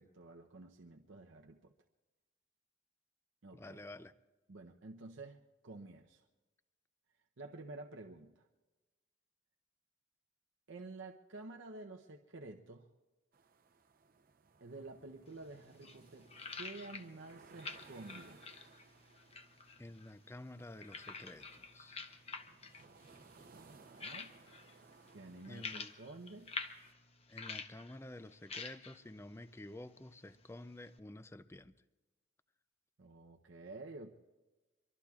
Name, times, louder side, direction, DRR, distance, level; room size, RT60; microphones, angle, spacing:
voice 1, 0.0-1.7 3.4-3.8 4.5-6.3 7.4-8.5 10.7-12.9 14.6-18.4 23.5-24.3 25.1-26.5 33.0-34.1, right 2 dB, 85° right, 0.7 m, -51 dB
voice 2, 3.5-4.1 19.8-22.1 25.5-25.9 27.3-31.7, left 1 dB, 15° left, 0.4 m, -50 dB
sound 1, 13.3-26.9, right 4 dB, 50° right, 0.7 m, -62 dB
sound 2, 15.3-31.0, left 4 dB, 35° left, 0.8 m, -50 dB
25.0 x 23.5 x 2.4 m
head